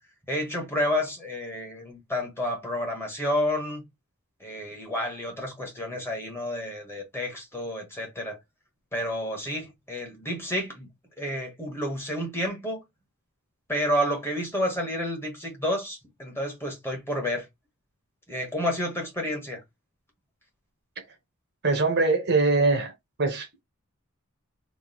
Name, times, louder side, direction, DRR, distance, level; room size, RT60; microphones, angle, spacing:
voice 1, 0.3-3.8 4.4-8.4 8.9-10.9 11.2-12.8 13.7-17.5 18.3-19.6, equal, 10° left, 1.2 m, -30 dB
voice 2, 21.6-22.9 23.2-23.6, right 3 dB, 50° right, 0.8 m, -22 dB
3.0 x 2.4 x 3.8 m
head